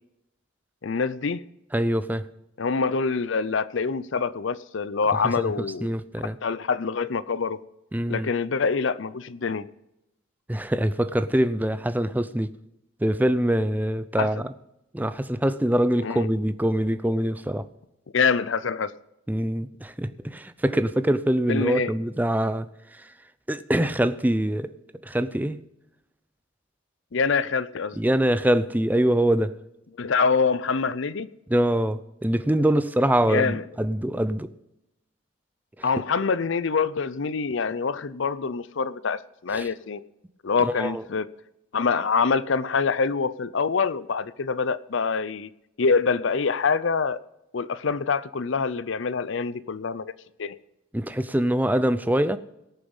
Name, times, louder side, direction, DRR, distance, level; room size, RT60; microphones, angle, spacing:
voice 1, 0.8-1.4 2.6-5.9 6.4-7.6 8.1-9.7 14.2-14.4 16.0-16.3 18.1-18.9 21.5-21.9 27.1-28.0 30.0-31.3 33.2-33.6 35.8-40.0 40.4-41.3 41.7-45.5 45.8-47.2 47.5-50.1 50.4-50.6, left 5 dB, 65° left, 0.6 m, -25 dB
voice 2, 1.7-2.3 5.1-5.5 5.8-6.4 7.9-8.3 10.5-12.5 13.0-14.5 14.9-17.7 19.3-23.1 23.5-24.7 25.0-25.6 28.0-29.6 31.5-34.5 35.8-35.9 39.5-39.7 40.6-41.0 50.9-52.4, right 1 dB, 10° right, 0.5 m, -24 dB
18.0 x 7.1 x 5.5 m
head